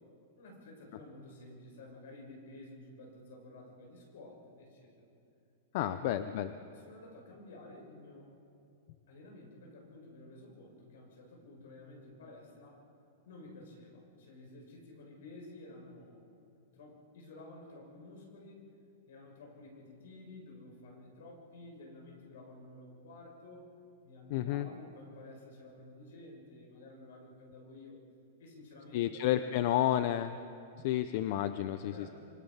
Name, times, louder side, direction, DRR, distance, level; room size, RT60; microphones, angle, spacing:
voice 1, 0.4-4.9 5.7-6.1 6.6-8.3 9.1-12.8 13.2-16.2 16.7-18.7 19.1-23.7 24.0-28.0 28.4-29.9 31.8-32.1, left 2 dB, 65° left, 1 dB, 6.8 m, -52 dB
voice 2, 5.7-6.5 24.3-24.7 28.9-30.4 30.8-32.1, left 12 dB, 40° left, 11 dB, 0.6 m, -31 dB
26.0 x 24.5 x 5.7 m, 2.7 s
supercardioid pair, 175°, 0 cm